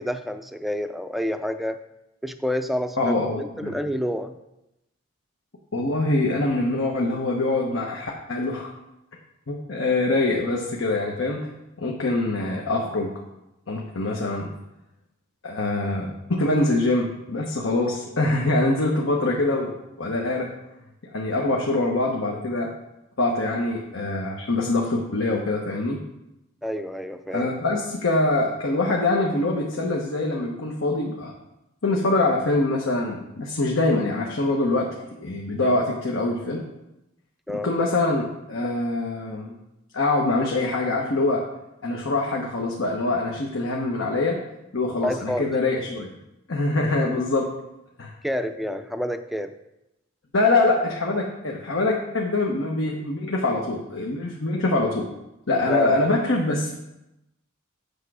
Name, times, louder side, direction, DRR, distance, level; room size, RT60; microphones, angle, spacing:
voice 1, 0.0-1.8 2.2-4.4 26.6-27.5 37.5-37.7 45.0-45.5 48.2-49.5 55.7-56.0, left 1 dB, ahead, 8 dB, 0.4 m, -28 dB
voice 2, 3.0-3.7 5.7-8.7 9.5-11.5 11.8-13.1 13.7-14.5 15.4-19.7 20.0-20.5 21.0-22.7 23.2-26.0 27.3-31.3 31.8-34.9 35.2-36.6 37.6-38.2 38.5-39.5 39.9-41.4 41.8-44.4 44.7-46.1 46.5-47.5 48.0-48.1 50.3-55.0 55.5-56.7, left 2 dB, 80° left, -1 dB, 1.1 m, -24 dB
8.3 x 6.6 x 4.8 m, 0.90 s
head